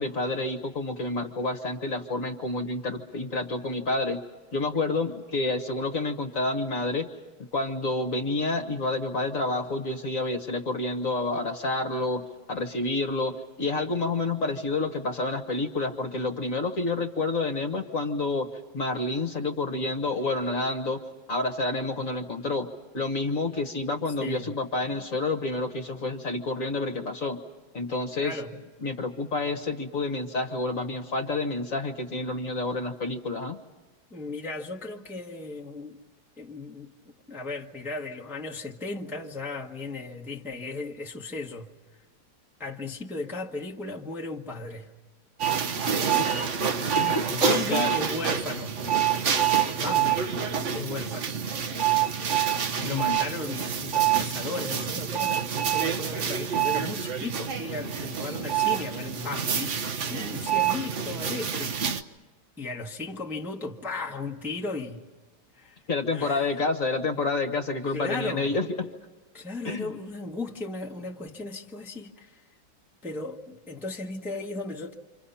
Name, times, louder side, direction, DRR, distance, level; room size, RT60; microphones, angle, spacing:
voice 1, 0.0-4.2 4.5-7.1 7.5-21.0 21.3-22.7 22.9-27.4 27.7-28.3 28.8-33.6 46.2-46.3 46.9-48.0 52.9-53.2 65.9-68.9 69.6-69.9, left 2 dB, 45° left, 1.7 m, -29 dB
voice 2, 24.2-24.5 28.2-28.5 34.1-36.0 36.4-36.9 37.3-41.7 42.6-44.9 47.3-48.8 49.8-50.3 50.7-51.4 52.8-59.8 60.1-61.8 62.6-65.0 65.5-65.8 66.1-66.5 67.9-68.6 69.3-72.4 73.0-74.9, left 3 dB, ahead, 1.2 m, -36 dB
sound 1, 45.4-62.0, right 8 dB, 50° right, 1.0 m, -27 dB
29.0 x 26.0 x 5.7 m
omnidirectional pair, 2.1 m